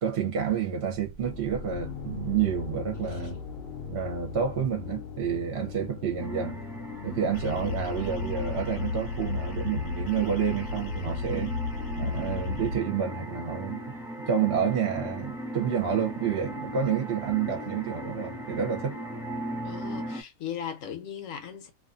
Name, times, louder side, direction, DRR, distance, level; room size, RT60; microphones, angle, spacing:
voice 1, 0.0-3.4 3.9-6.6 7.0-11.5 12.0-13.9 14.3-19.0, right 7 dB, 55° right, 0.8 m, -29 dB
sound 1, 0.9-8.8, left 5 dB, 55° left, 0.7 m, -40 dB
sound 2, 6.2-20.2, equal, 5° right, 0.3 m, -38 dB
sound 3, 7.3-12.8, left 4 dB, 90° left, 1.1 m, -33 dB
voice 2, 19.6-21.7, left 8 dB, 70° left, 1.0 m, -38 dB
2.4 x 2.4 x 2.4 m
omnidirectional pair, 1.5 m